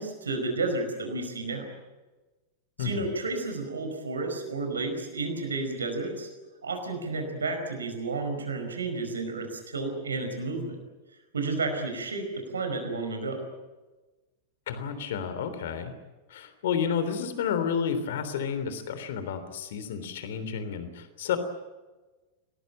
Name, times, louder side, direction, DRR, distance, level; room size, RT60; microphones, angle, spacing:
voice 1, 0.0-1.7 2.8-6.3 6.6-10.8 11.3-13.5, right 3 dB, 70° right, 5 dB, 5.0 m, -31 dB
voice 2, 14.7-15.9 16.3-21.4, left 7 dB, 55° left, 10 dB, 3.4 m, -31 dB
27.0 x 19.0 x 9.1 m, 1.2 s
figure-of-eight pair, 90°, 0 cm